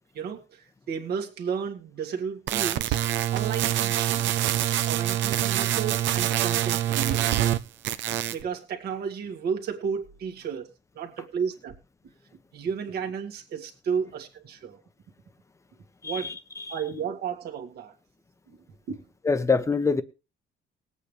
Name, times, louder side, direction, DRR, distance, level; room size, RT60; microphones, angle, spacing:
voice 1, 0.1-3.0 3.3-4.3 4.9-7.5 8.3-10.7 11.0-11.7 12.5-14.8 16.0-16.3 16.7-17.9 18.5-18.6 18.9-19.0, right 6 dB, 55° right, 1.9 m, -33 dB
sound 1, 2.5-7.6 7.8-8.4, right 12 dB, 75° right, 0.8 m, -25 dB
voice 2, 19.3-20.0, left 4 dB, 15° left, 0.9 m, -24 dB
20.5 x 8.3 x 3.3 m
cardioid pair, 155°, 19 cm